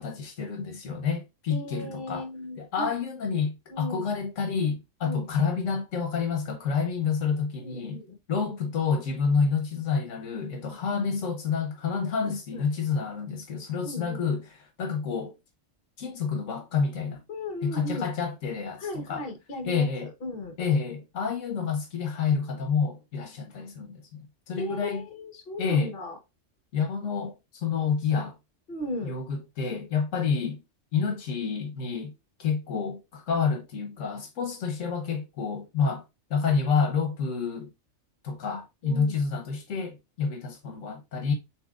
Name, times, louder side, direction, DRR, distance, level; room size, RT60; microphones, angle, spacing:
voice 1, 0.0-2.3 2.6-8.0 8.3-15.4 16.0-17.2 17.6-19.3 19.7-20.1 20.6-25.0 25.6-25.9 26.7-28.4 29.0-30.6 30.9-32.1 32.4-36.0 36.3-37.7 38.2-41.3, left 5 dB, 75° left, 1.3 m, -29 dB
voice 2, 1.5-2.9 3.7-4.1 5.0-5.3 7.6-8.2 12.3-12.6 13.8-14.2 17.3-18.1 18.8-19.9 20.2-20.5 24.6-26.1 28.7-29.1 38.8-39.2, left 1 dB, 50° left, 1.3 m, -36 dB
6.8 x 3.0 x 2.4 m
omnidirectional pair, 1.3 m